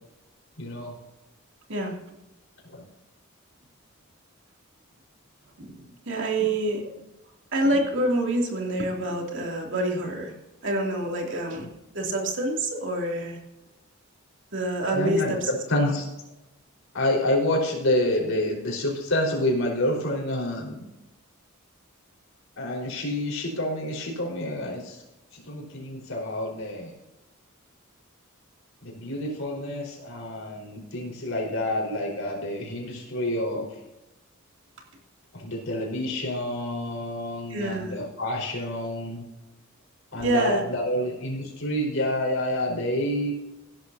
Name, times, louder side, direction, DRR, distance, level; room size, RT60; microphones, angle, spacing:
voice 1, 0.6-0.9 2.6-2.8 14.9-16.1 16.9-20.9 22.6-25.0 25.3-26.9 28.8-33.7 35.3-39.3 40.1-43.3, left 1 dB, 65° left, -1 dB, 4.5 m, -28 dB
voice 2, 6.1-6.8 7.5-10.3 10.6-11.7 11.9-13.4 14.5-15.4 37.5-37.9 40.2-40.6, right 1 dB, 55° right, 0 dB, 2.8 m, -26 dB
16.5 x 12.0 x 2.8 m, 0.97 s
head